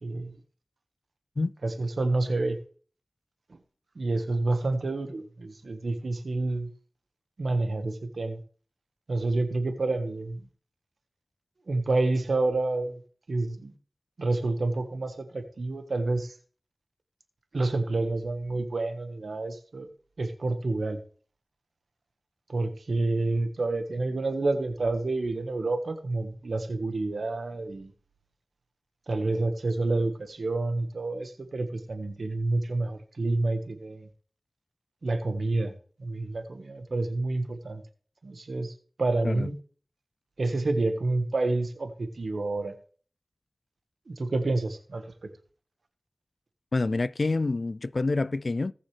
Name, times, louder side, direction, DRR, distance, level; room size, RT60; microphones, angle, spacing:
voice 1, 0.0-0.3 1.6-2.6 3.9-6.7 7.4-8.4 9.1-10.4 11.7-13.0 13.3-13.7 14.2-16.4 17.5-19.9 20.2-21.0 22.5-27.9 29.1-34.1 35.0-35.7 36.0-37.8 38.2-38.7 39.0-39.6 40.4-42.7 44.1-45.0, right 2 dB, 80° right, 1.4 m, -28 dB
voice 2, 46.7-48.7, left 3 dB, 65° left, 0.3 m, -27 dB
18.0 x 6.4 x 3.3 m
cardioid pair, 40°, 0 cm